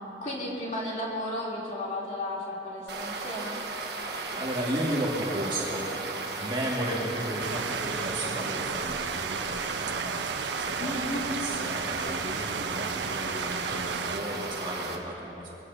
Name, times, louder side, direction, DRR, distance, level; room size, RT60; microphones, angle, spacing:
voice 1, 0.2-3.6 10.8-11.2, left 1 dB, 40° left, -6 dB, 3.5 m, -34 dB
sound 1, 2.9-15.0, right 3 dB, 65° right, 1.4 m, -35 dB
voice 2, 4.1-5.9 6.4-10.2 10.6-15.5, right 1 dB, 25° right, -5 dB, 2.2 m, -34 dB
sound 2, 7.4-14.2, right 7 dB, 85° right, 0.5 m, -34 dB
23.0 x 16.0 x 2.9 m, 2.9 s
head